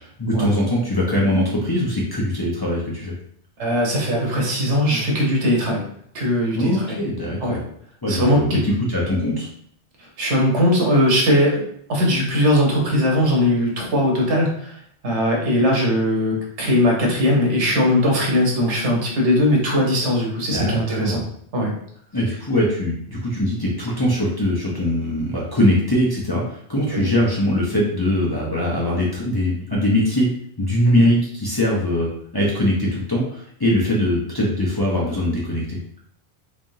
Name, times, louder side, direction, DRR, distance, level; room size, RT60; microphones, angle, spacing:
voice 1, 0.2-3.1 6.6-7.6 8.0-9.5 20.5-21.2 22.1-30.3 30.6-35.8, left 1 dB, 25° left, -6 dB, 0.7 m, -21 dB
voice 2, 3.6-5.8 6.1-7.0 7.4-7.6 8.1-8.6 10.2-11.6 11.9-14.8 15.0-21.2 21.5-21.7 26.9-27.1 30.9-31.1, equal, 80° right, -1 dB, 1.3 m, -19 dB
3.5 x 3.5 x 2.6 m, 0.66 s
omnidirectional pair, 1.2 m